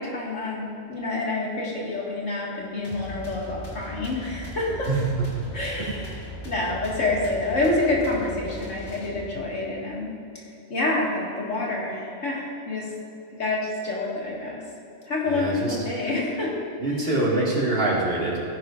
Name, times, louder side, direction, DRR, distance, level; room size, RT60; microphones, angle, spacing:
voice 1, 0.0-4.9 5.5-10.1 10.7-12.9 13.4-14.6 15.1-16.5 16.9-17.0, left 2 dB, 85° left, -4 dB, 2.3 m, -27 dB
sound 1, 2.8-9.6, equal, 20° left, 1.5 m, -39 dB
voice 2, 15.3-15.8 16.8-18.4, right 2 dB, 50° right, -5 dB, 2.3 m, -25 dB
15.0 x 10.0 x 2.5 m, 2.8 s
omnidirectional pair, 1.2 m